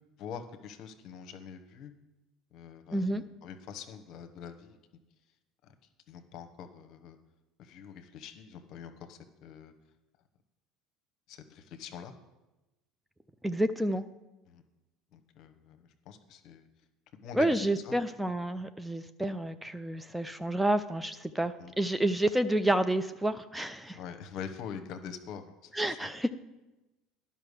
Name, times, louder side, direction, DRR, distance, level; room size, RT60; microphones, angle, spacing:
voice 1, 0.2-1.9 2.5-4.8 5.6-5.7 6.1-7.2 7.6-9.7 11.3-12.1 14.5-14.6 15.1-16.7 17.1-18.0 21.6-21.7 23.9-26.1, left 7 dB, 55° left, 7 dB, 1.0 m, -45 dB
voice 2, 2.9-3.2 13.4-14.0 17.3-24.0 25.8-26.3, right 1 dB, 5° right, 10 dB, 0.5 m, -29 dB
10.5 x 5.5 x 6.5 m, 1.0 s
hypercardioid pair, 70°, 0 cm